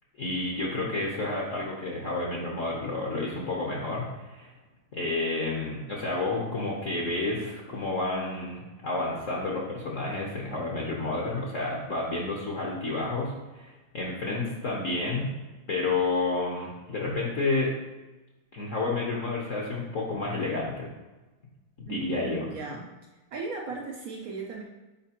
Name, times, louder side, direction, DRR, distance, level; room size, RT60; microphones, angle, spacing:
voice 1, 0.2-4.5 4.9-15.3 15.7-17.7 18.5-20.9 21.8-22.5, left 3 dB, 50° left, -3 dB, 1.0 m, -30 dB
voice 2, 21.9-22.9 23.3-24.6, right 4 dB, 75° right, 0 dB, 0.8 m, -37 dB
7.2 x 4.9 x 2.9 m, 1.2 s
omnidirectional pair, 2.3 m